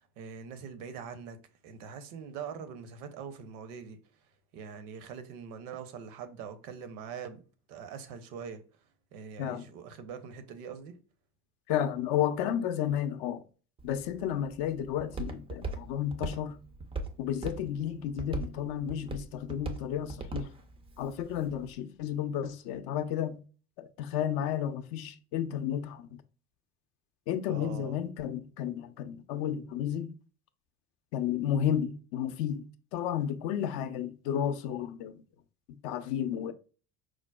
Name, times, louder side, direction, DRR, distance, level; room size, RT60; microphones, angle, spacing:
voice 1, 0.0-1.4 1.6-4.0 4.5-7.4 7.7-8.6 9.1-11.0 27.5-28.0, right 6 dB, 70° right, 0.6 m, -43 dB
voice 2, 11.7-13.4 13.8-16.6 17.2-20.5 21.0-23.4 23.8-26.2 27.3-30.1 31.1-35.2 35.8-36.5, left 10 dB, 60° left, 0.5 m, -32 dB
Walk footsteps, 13.8-21.7, right 3 dB, 15° right, 0.3 m, -41 dB
4.6 x 2.0 x 2.2 m
hypercardioid pair, 65°, 46 cm